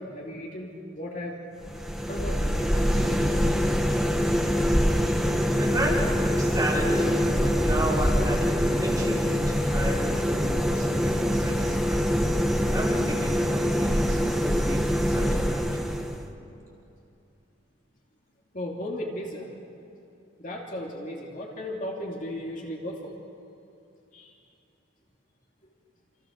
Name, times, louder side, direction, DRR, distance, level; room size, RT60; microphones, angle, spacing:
voice 1, 0.0-1.4 2.1-3.4 4.5-5.5 18.5-19.5 20.4-23.2 24.1-24.3, left 1 dB, 40° left, -1 dB, 2.8 m, -36 dB
sound 1, 1.6-16.3, equal, ahead, 1.4 m, -24 dB
voice 2, 5.6-12.2 12.7-15.6, equal, 20° right, -6 dB, 5.5 m, -33 dB
28.0 x 28.0 x 6.6 m, 2.8 s
head